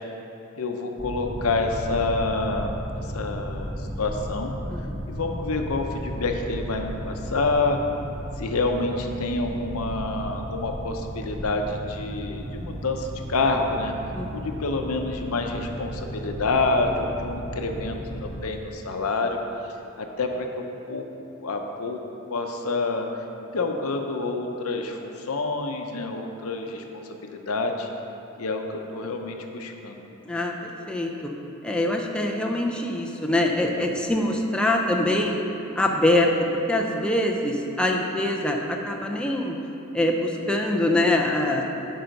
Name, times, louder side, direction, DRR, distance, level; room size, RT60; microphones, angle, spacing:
voice 1, 0.6-2.7 3.1-4.5 5.0-7.8 8.4-13.9 14.3-19.4 20.0-21.0 21.4-22.0 22.3-23.1 23.5-26.8 27.1-27.9 28.4-30.0, left 3 dB, 75° left, 4 dB, 0.7 m, -28 dB
Boat Water vehicle, 1.0-18.4, equal, 15° right, 0.9 m, -35 dB
voice 2, 14.1-14.5 30.3-30.5 30.9-31.3 31.6-35.4 35.8-36.3 36.7-39.6 39.9-41.7, left 1 dB, 5° left, 0 dB, 0.6 m, -24 dB
8.9 x 5.6 x 5.2 m, 2.9 s
head